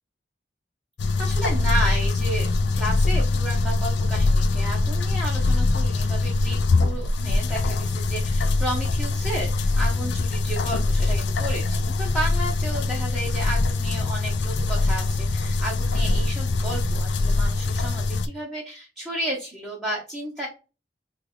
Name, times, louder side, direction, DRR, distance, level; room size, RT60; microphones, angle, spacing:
sound 1, 1.0-18.3, left 3 dB, 75° left, 0.4 m, -23 dB
voice 1, 1.2-2.5 2.7-20.5, right 1 dB, 5° right, -6 dB, 0.8 m, -32 dB
3.2 x 2.3 x 3.6 m, 0.31 s
head